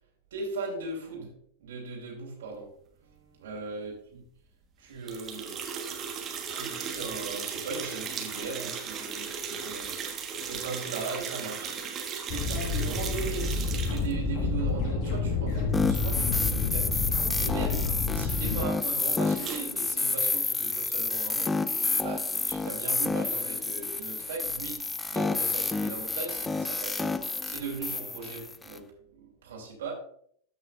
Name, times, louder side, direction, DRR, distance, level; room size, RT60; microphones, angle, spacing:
voice 1, 0.3-1.3 1.6-2.7 3.0-4.2 4.8-5.6 6.3-11.7 12.3-16.9 17.4-21.6 22.0-27.2 27.4-28.9 29.1-29.9, right 4 dB, 60° right, -1 dB, 2.3 m, -38 dB
sound 1, 5.1-14.1 19.3-19.6, right 6 dB, 25° right, 1.3 m, -36 dB
sound 2, 12.3-18.6, left 4 dB, 40° left, 1.7 m, -29 dB
sound 3, 15.7-28.8, left 3 dB, 10° left, 0.4 m, -30 dB
13.0 x 5.5 x 2.5 m, 0.63 s
figure-of-eight pair, 90°, 0 cm